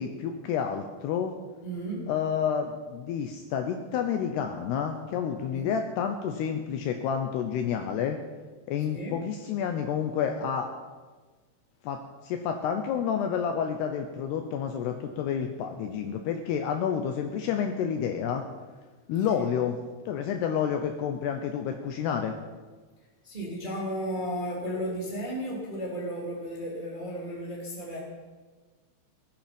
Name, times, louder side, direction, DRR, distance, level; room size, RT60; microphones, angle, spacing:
voice 1, 0.0-1.3 2.1-8.2 8.7-10.7 11.8-18.4 19.1-19.8 20.1-22.4, left 8 dB, 85° left, 5 dB, 2.3 m, -29 dB
voice 2, 1.6-2.0 5.5-5.7 8.9-9.2 19.3-19.4 23.2-28.0, equal, 15° right, -4 dB, 2.1 m, -34 dB
17.5 x 13.0 x 5.3 m, 1.4 s
omnidirectional pair, 5.9 m